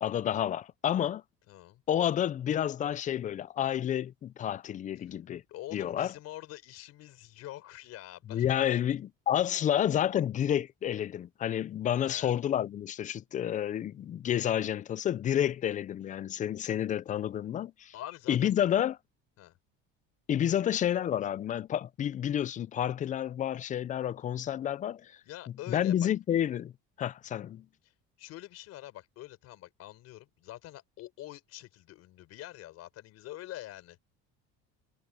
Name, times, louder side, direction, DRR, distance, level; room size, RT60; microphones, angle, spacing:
voice 1, 0.0-1.2 1.9-5.4 5.7-6.1 8.3-17.9 18.3-18.9 20.3-25.2 25.7-26.7 27.0-27.7, left 10 dB, 25° left, 0.4 m, -30 dB
voice 2, 1.5-1.8 5.5-8.8 12.0-12.3 17.9-18.7 19.4-19.6 20.5-20.6 25.2-26.1 27.8-34.1, left 15 dB, 55° left, 4.3 m, -46 dB
cardioid pair, 155°, 30 cm